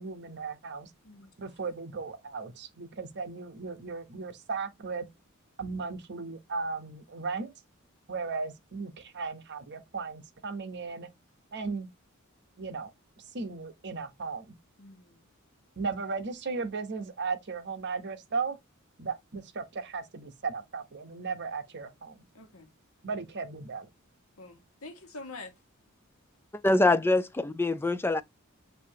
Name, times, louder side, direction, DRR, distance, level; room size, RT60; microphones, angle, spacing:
voice 1, 0.0-0.9 1.4-5.1 5.6-7.5 8.1-11.1 11.5-11.9 12.6-12.9 13.2-14.6 15.8-18.6 19.0-22.2 23.0-23.9, right 4 dB, 55° right, 0.9 m, -36 dB
voice 2, 14.8-15.3 22.3-22.7 24.4-25.5, left 2 dB, 80° left, 1.2 m, -46 dB
voice 3, 26.6-28.2, left 2 dB, 10° left, 0.4 m, -24 dB
6.7 x 2.7 x 2.8 m
head